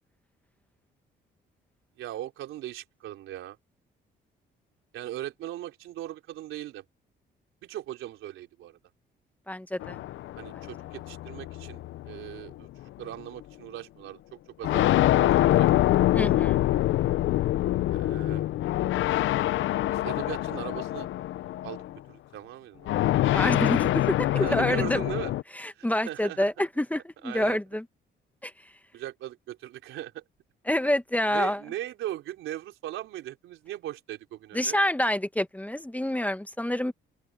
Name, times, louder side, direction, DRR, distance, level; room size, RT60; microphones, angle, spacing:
voice 1, 2.0-3.6 4.9-6.8 7.6-8.8 10.3-12.7 13.0-14.2 14.6-15.7 17.8-18.4 19.9-21.1 21.6-21.8 22.1-23.0 24.3-25.3 25.8-26.5 27.2-27.6 28.9-30.2 31.3-34.8, right 13 dB, 85° right, 4.0 m, -39 dB
voice 2, 9.5-10.0 16.1-16.7 23.3-25.0 25.5-27.8 28.4-28.5 30.7-31.6 34.5-36.9, left 1 dB, 5° left, 1.4 m, -27 dB
sound 1, 9.8-12.5 13.4-13.5 14.6-22.0 22.9-25.4, left 14 dB, 75° left, 0.6 m, -25 dB
open air
cardioid pair, 90°, 20 cm